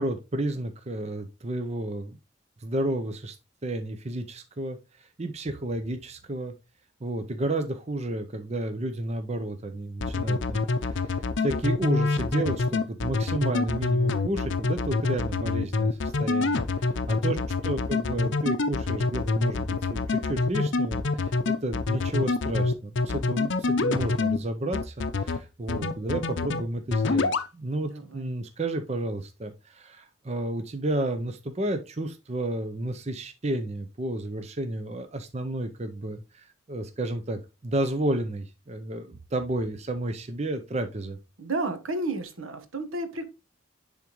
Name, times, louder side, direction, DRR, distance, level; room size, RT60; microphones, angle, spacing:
voice 1, 0.0-2.2 2.6-3.4 3.6-6.5 7.0-17.4 17.6-41.2, right 1 dB, 30° right, 7 dB, 0.6 m, -31 dB
sound 1, 10.0-24.4 24.7-25.4 25.7-26.6 26.9-27.5, left 3 dB, 60° left, 0.6 m, -25 dB
voice 2, 27.9-28.3 41.4-43.3, right 2 dB, 80° right, 8 dB, 1.2 m, -32 dB
10.5 x 3.6 x 3.0 m, 0.28 s
head